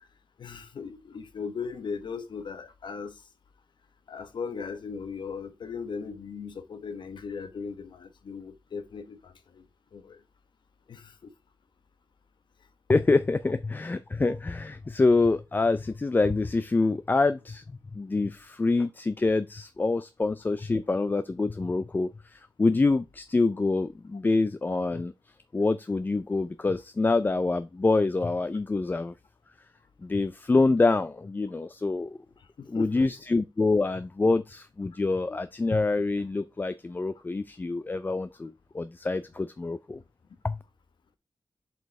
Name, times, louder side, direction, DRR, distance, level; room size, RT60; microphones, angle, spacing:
voice 1, 0.4-3.2 4.1-9.6 9.9-10.2 10.9-11.3 32.7-33.1, left 5 dB, 90° left, 1.1 m, -38 dB
voice 2, 12.9-25.1 25.5-29.1 30.0-32.2 32.7-40.0 40.4-40.6, left 3 dB, 25° left, 0.4 m, -26 dB
7.7 x 5.3 x 3.4 m
wide cardioid pair, 150°, 8 cm